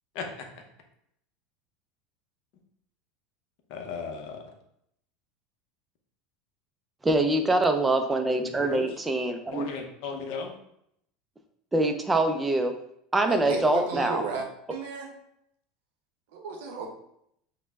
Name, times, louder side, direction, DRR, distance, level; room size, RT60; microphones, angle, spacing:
voice 1, 3.7-4.4 8.4-8.9 9.5-10.5, left 5 dB, 65° left, 3 dB, 0.6 m, -35 dB
voice 2, 7.0-9.7 11.7-12.7 13.1-14.2, right 2 dB, 10° right, 5 dB, 0.3 m, -24 dB
voice 3, 13.2-15.1 16.3-16.9, right 4 dB, 85° right, 2 dB, 0.7 m, -34 dB
3.1 x 2.0 x 3.4 m, 0.74 s
supercardioid pair, 140°, 0 cm